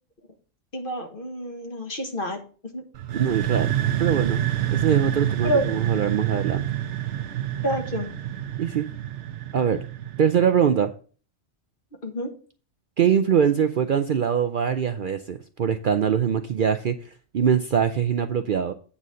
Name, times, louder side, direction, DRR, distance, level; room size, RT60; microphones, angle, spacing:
voice 1, 0.7-2.4 2.7-2.8 5.4-5.6 7.6-8.1 12.0-12.3, right 1 dB, 45° left, 4 dB, 1.6 m, -27 dB
sound 1, 2.9-10.6, right 11 dB, 75° right, 1.1 m, -27 dB
voice 2, 3.1-3.7 4.0-4.5 4.7-6.6 8.6-8.9 9.5-9.8 10.2-10.9 13.0-18.7, right 8 dB, 55° right, 9 dB, 0.6 m, -23 dB
8.7 x 4.1 x 6.2 m, 0.39 s
omnidirectional pair, 1.2 m